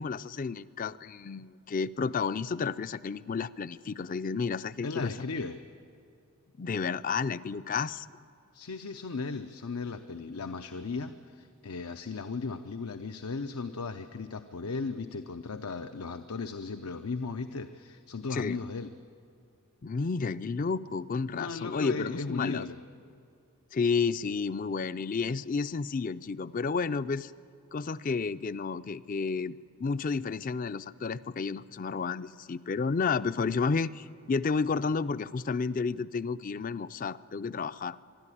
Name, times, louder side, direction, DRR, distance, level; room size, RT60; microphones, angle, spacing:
voice 1, 0.0-5.1 6.6-8.1 18.3-18.6 19.8-22.6 23.7-27.3 27.7-38.0, left 5 dB, 40° left, 15 dB, 0.4 m, -31 dB
voice 2, 4.8-5.6 8.5-18.9 21.3-22.8, left 4 dB, 90° left, 8 dB, 0.7 m, -36 dB
24.5 x 12.5 x 9.9 m, 2.4 s
head